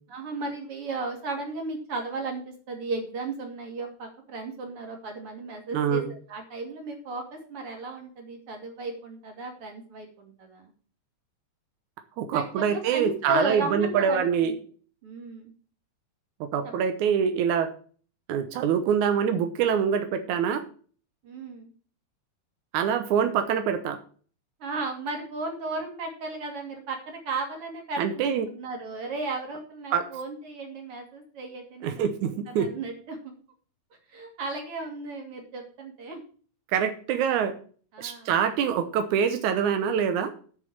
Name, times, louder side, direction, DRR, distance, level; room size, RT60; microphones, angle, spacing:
voice 1, 0.1-6.0 6.3-10.7 12.3-14.6 15.0-15.5 16.6-16.7 21.2-21.7 24.6-32.1 32.5-33.3 34.1-36.2 37.9-38.3, right 3 dB, 50° right, 3 dB, 3.4 m, -35 dB
voice 2, 5.7-6.1 12.2-14.5 16.4-17.7 18.3-20.6 22.7-24.0 28.0-28.5 29.9-30.1 31.8-32.7 36.7-37.5 38.0-40.3, right 7 dB, 90° right, 8 dB, 2.4 m, -25 dB
8.4 x 6.7 x 7.4 m, 0.42 s
omnidirectional pair, 3.3 m